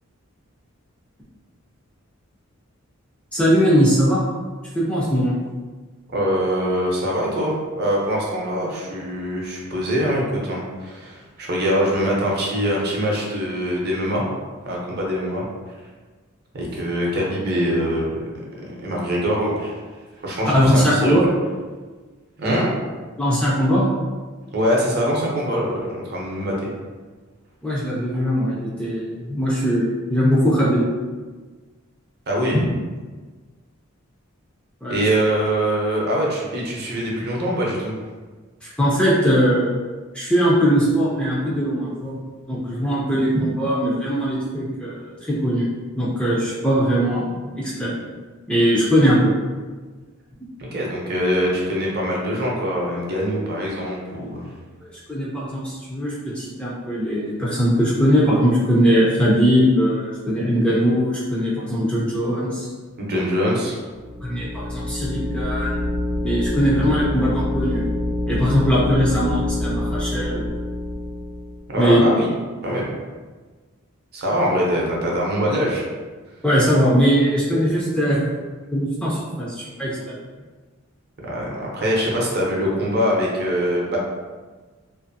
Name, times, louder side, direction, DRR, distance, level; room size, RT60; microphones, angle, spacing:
voice 1, 3.3-4.2 4.7-5.3 20.5-21.3 23.2-23.9 27.6-30.9 32.5-32.7 34.8-35.0 38.6-39.8 40.1-42.2 42.5-45.7 46.0-47.9 48.5-49.3 54.8-62.7 64.2-65.8 66.2-67.9 68.3-70.4 71.7-72.0 76.4-78.3 78.7-80.1, equal, 5° left, -6 dB, 0.4 m, -20 dB
voice 2, 6.1-14.3 14.6-15.5 16.5-18.2 18.8-19.7 20.2-21.2 22.4-22.7 24.5-26.7 32.3-32.6 34.9-38.0 50.6-54.5 63.0-63.8 71.7-72.3 72.6-72.9 74.1-75.8 81.2-84.0, equal, 50° right, -3 dB, 0.6 m, -23 dB
sound 1, 63.9-71.6, left 1 dB, 75° left, 0.6 m, -26 dB
2.5 x 2.5 x 2.6 m, 1.4 s
head